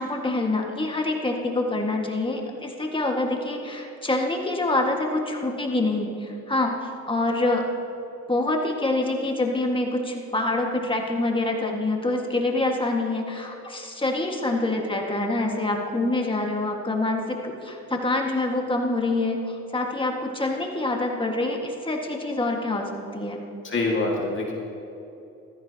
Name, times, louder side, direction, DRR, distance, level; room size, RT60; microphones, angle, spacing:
voice 1, 0.0-6.7 7.1-7.6 8.3-23.4, left 2 dB, 15° left, 1 dB, 1.8 m, -26 dB
voice 2, 23.6-24.5, left 2 dB, 40° left, -2 dB, 2.0 m, -25 dB
16.0 x 13.0 x 2.9 m, 2.9 s
cardioid pair, 90°, 30 cm